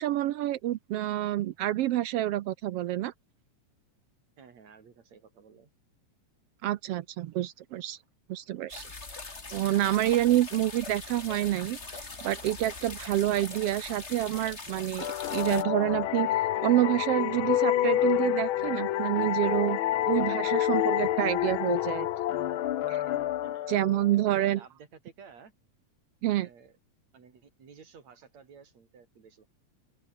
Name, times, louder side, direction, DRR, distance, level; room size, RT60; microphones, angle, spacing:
voice 1, 0.0-3.1 6.6-8.0 8.3-8.8 9.5-16.3 16.6-19.8 20.1-22.1 22.9-23.0 23.7-24.6 26.2-26.5, right 14 dB, 75° right, 1.4 m, -28 dB
voice 2, 4.4-5.7 23.4-23.7 24.1-25.5 26.4-26.8 27.1-29.5, right 6 dB, 60° right, 5.0 m, -53 dB
sound 1, 8.7-15.6, left 3 dB, 20° left, 2.9 m, -42 dB
sound 2, 15.0-24.4, left 13 dB, 85° left, 1.1 m, -28 dB
open air
omnidirectional pair, 3.5 m